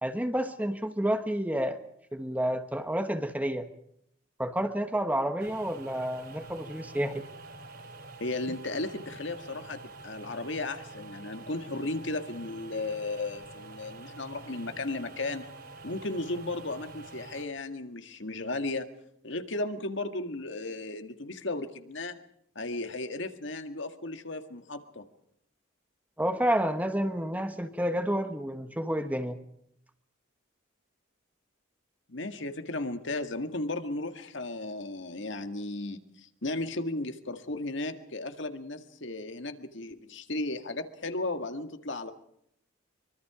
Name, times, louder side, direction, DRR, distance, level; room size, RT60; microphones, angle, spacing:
voice 1, 0.0-1.8 2.1-3.7 4.4-7.3 26.2-29.4, equal, 10° right, 8 dB, 1.2 m, -30 dB
sound 1, 5.4-17.5, right 2 dB, 45° right, 3.0 m, -47 dB
voice 2, 8.2-15.5 15.8-18.9 19.2-22.2 22.6-25.1 32.1-42.1, left 2 dB, 65° left, 7 dB, 1.9 m, -35 dB
24.5 x 23.5 x 5.0 m, 0.72 s
head